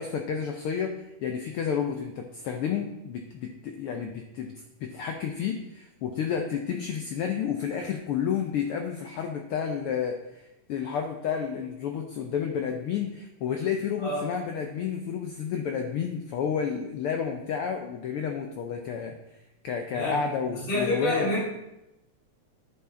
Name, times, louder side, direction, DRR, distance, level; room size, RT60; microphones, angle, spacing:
voice 1, 0.0-4.5 4.8-19.2 19.6-21.3, left 7 dB, 90° left, 4 dB, 1.2 m, -31 dB
voice 2, 20.7-21.4, left 1 dB, 60° left, -6 dB, 4.6 m, -27 dB
10.5 x 7.0 x 3.8 m, 0.92 s
omnidirectional pair, 3.3 m